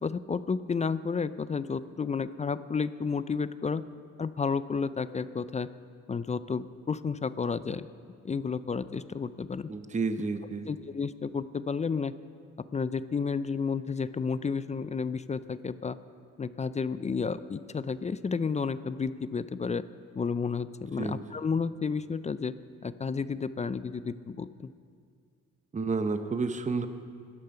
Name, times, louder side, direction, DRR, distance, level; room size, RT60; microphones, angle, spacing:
voice 1, 0.0-3.8 4.2-5.7 6.1-7.9 8.2-9.7 10.7-12.1 12.7-16.0 16.4-19.8 20.2-22.5 22.8-24.7, left 5 dB, 25° left, 14 dB, 0.4 m, -31 dB
voice 2, 9.7-10.8 21.0-21.4 25.7-26.9, right 4 dB, 25° right, 9 dB, 0.9 m, -31 dB
18.0 x 12.0 x 5.8 m, 2.2 s
cardioid pair, 90°, 30 cm